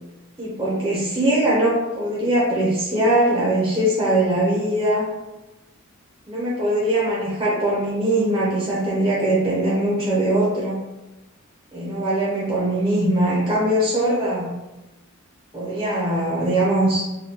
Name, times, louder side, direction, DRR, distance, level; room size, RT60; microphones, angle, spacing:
voice 1, 0.4-5.1 6.3-10.8 11.7-14.5 15.5-17.1, right 1 dB, 20° right, -6 dB, 0.5 m, -21 dB
3.5 x 2.1 x 2.8 m, 1.0 s
head